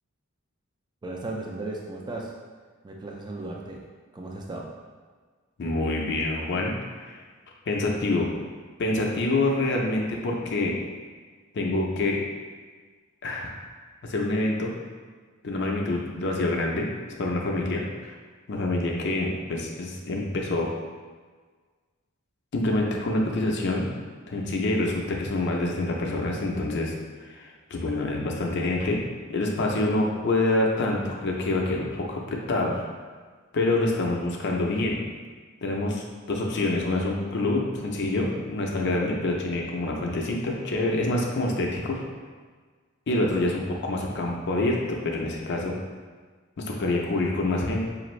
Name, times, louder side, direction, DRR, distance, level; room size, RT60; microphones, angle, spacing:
voice 1, 1.0-2.3 2.8-3.8 4.1-4.7, right 2 dB, 20° right, -1 dB, 0.4 m, -35 dB
voice 2, 5.6-7.2 7.7-8.3 8.8-10.8 11.5-12.2 13.2-13.5 14.0-14.7 15.4-16.9 17.2-18.1 18.5-20.7 22.5-23.9 24.3-26.9 27.2-29.0 29.3-32.8 33.5-35.0 35.6-42.0 43.1-45.8 46.6-47.8, left 2 dB, 55° left, -1 dB, 0.5 m, -26 dB
4.9 x 2.5 x 3.1 m, 1.5 s
head